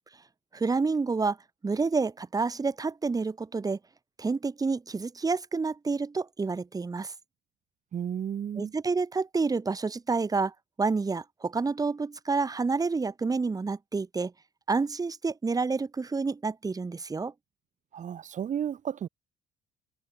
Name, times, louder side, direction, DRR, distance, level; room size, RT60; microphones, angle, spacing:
voice 1, 0.5-1.4 1.6-3.8 4.2-7.1 8.6-14.3 14.7-17.3, right 4 dB, 20° right, 2.1 m, -29 dB
voice 2, 7.9-8.7 17.9-19.1, right 9 dB, 45° right, 2.4 m, -33 dB
cardioid pair, 110°, 17 cm